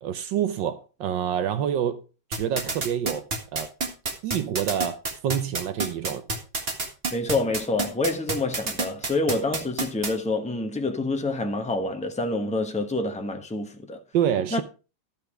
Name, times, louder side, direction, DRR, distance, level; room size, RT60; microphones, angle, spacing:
voice 1, 0.0-2.0 2.3-3.7 4.2-6.3 14.1-14.6, right 9 dB, 75° right, 1.4 m, -27 dB
sound 1, 2.3-10.1, right 3 dB, 30° right, 1.7 m, -27 dB
voice 2, 7.1-14.0 14.5-14.6, left 2 dB, 5° left, 0.6 m, -27 dB
12.0 x 5.9 x 4.9 m
omnidirectional pair, 2.1 m